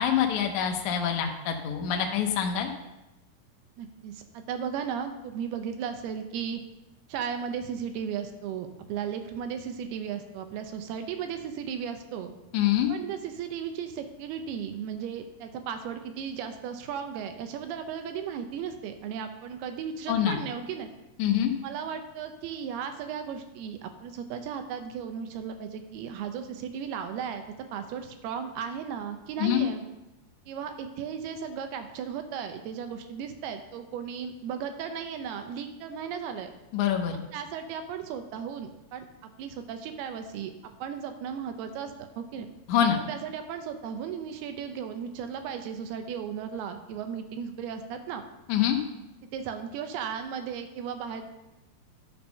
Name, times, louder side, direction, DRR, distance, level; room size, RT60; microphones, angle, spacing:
voice 1, 0.0-2.7 12.5-12.9 20.1-20.4 21.2-21.5 29.4-29.6 36.7-37.1 42.7-43.0 48.5-48.8, left 9 dB, 80° left, 3 dB, 1.7 m, -25 dB
voice 2, 3.8-6.6 7.1-12.3 12.9-20.9 21.6-27.4 27.7-29.8 30.5-36.5 37.3-42.5 43.1-48.2 49.3-51.2, right 7 dB, 85° right, 7 dB, 2.7 m, -35 dB
11.5 x 4.4 x 5.7 m, 0.98 s
omnidirectional pair, 4.5 m